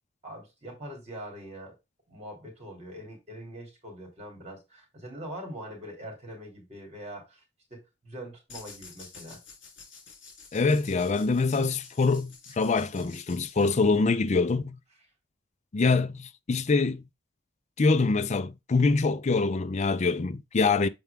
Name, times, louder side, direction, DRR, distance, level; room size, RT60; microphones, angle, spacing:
voice 1, 0.2-1.7 2.1-7.4 7.7-9.4, equal, 35° right, 3.2 m, -43 dB
sound 1, 8.5-14.2, left 5 dB, 70° left, 3.4 m, -50 dB
voice 2, 10.5-14.8 15.7-17.0 17.8-20.9, left 4 dB, 35° left, 0.4 m, -25 dB
7.0 x 4.5 x 3.5 m
head